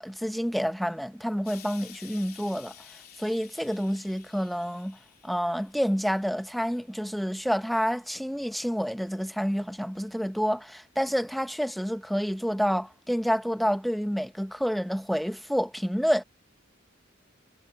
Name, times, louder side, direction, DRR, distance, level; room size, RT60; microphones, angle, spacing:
voice 1, 0.0-16.2, equal, ahead, 0.9 m, -29 dB
Explosion, 1.4-6.7 7.6-7.7, left 10 dB, 50° left, 3.4 m, -51 dB
head